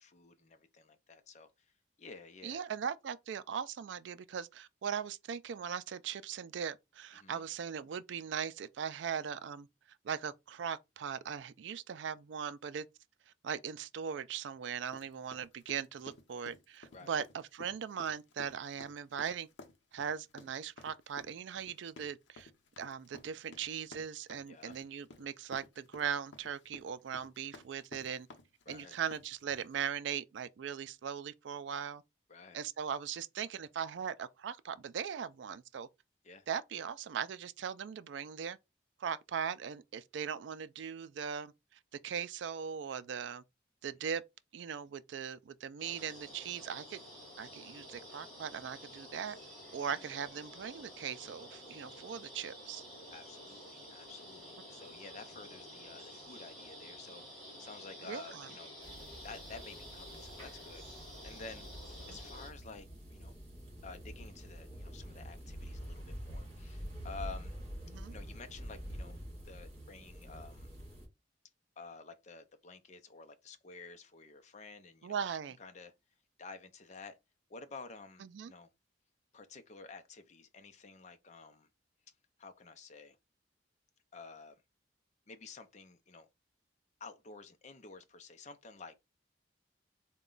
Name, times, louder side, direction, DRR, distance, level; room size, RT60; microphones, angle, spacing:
voice 1, 0.0-1.7 2.0-2.6 7.1-7.4 16.9-17.2 24.5-24.7 28.7-29.0 32.3-32.6 36.2-36.5 49.9-50.2 53.1-61.7 62.1-62.9 63.1-63.4 63.8-67.6 68.1-69.2 69.4-70.7 71.8-75.9 76.4-77.2 77.5-78.7 79.3-81.7 82.4-83.2 84.1-84.6 85.3-86.3 87.0-89.0, left 4 dB, 40° left, 0.5 m, -51 dB
voice 2, 2.4-9.7 10.0-12.9 13.4-19.5 19.9-22.5 22.8-28.3 28.7-32.0 32.5-35.9 36.5-38.6 39.0-43.4 43.8-44.2 44.5-47.0 47.4-49.4 49.7-52.8 58.0-58.5 62.1-62.2 67.9-68.1 75.0-75.6 78.2-78.5, right 7 dB, 75° right, 0.3 m, -39 dB
sound 1, 14.9-29.8, left 2 dB, 80° left, 0.7 m, -54 dB
sound 2, 45.8-62.5, equal, 5° left, 1.9 m, -51 dB
sound 3, 58.8-71.1, equal, 35° right, 2.1 m, -47 dB
4.0 x 2.2 x 3.8 m
head